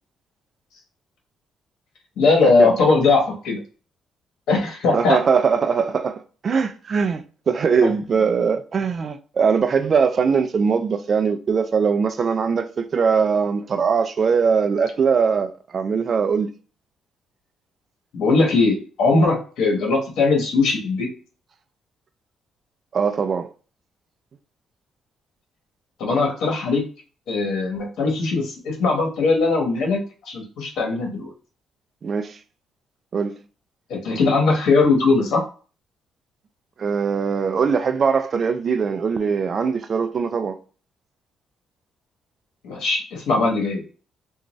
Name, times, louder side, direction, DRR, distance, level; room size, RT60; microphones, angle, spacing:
voice 1, 2.2-3.6 4.5-5.2 7.8-7.9 18.1-21.1 26.0-26.8 27.3-31.3 33.9-35.4 42.6-43.8, left 3 dB, 80° left, 1.0 m, -20 dB
voice 2, 4.9-16.5 22.9-23.5 32.0-32.4 33.1-33.4 36.8-40.6, right 6 dB, 45° right, 0.4 m, -21 dB
2.5 x 2.3 x 3.0 m
cardioid pair, 90°, 0 cm